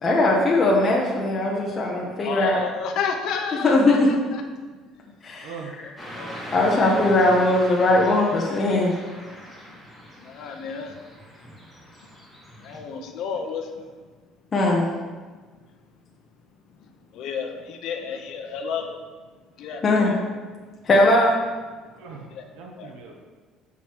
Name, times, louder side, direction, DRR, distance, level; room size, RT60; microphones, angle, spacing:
voice 1, 0.0-2.6 3.6-4.1 5.2-5.5 6.5-8.9 14.5-14.9 19.8-20.1 20.8-21.4, left 2 dB, 25° left, -3 dB, 0.8 m, -19 dB
voice 2, 2.2-3.8 4.1-4.4 6.2-7.0 10.2-10.9 12.6-13.6 17.1-18.9 19.6-20.2 22.4-22.5 22.8-22.9, left 6 dB, 55° left, 4 dB, 0.8 m, -31 dB
voice 3, 5.4-5.7 6.6-6.8 22.0-23.2, right 5 dB, 85° right, 1 dB, 0.8 m, -41 dB
Car passing by / Traffic noise roadway noise, 6.0-12.8, equal, 5° left, 1.6 m, -40 dB
7.7 x 5.9 x 3.0 m, 1.4 s
cardioid pair, 165°, 0 cm